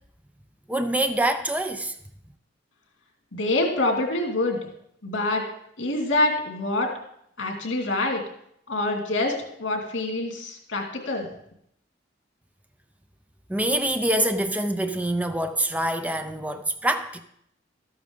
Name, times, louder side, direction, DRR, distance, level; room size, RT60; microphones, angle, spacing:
voice 1, 0.7-1.9 13.5-17.2, right 1 dB, 10° right, 0.6 m, -25 dB
voice 2, 3.3-4.6 5.0-5.4 5.8-6.9 7.4-8.2 8.7-9.3 9.6-11.3, left 2 dB, 75° left, 2.5 m, -25 dB
13.0 x 8.5 x 3.8 m
head